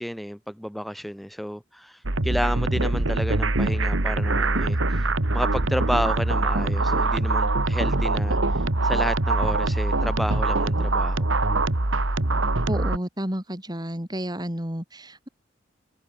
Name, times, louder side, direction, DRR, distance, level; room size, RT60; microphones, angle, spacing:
voice 1, 0.0-5.0 5.3-8.4 8.8-11.3, equal, ahead, 7.6 m, -31 dB
sound 1, 2.0-13.0, right 2 dB, 85° right, 1.9 m, -23 dB
voice 2, 12.7-15.3, equal, 20° right, 4.9 m, -31 dB
head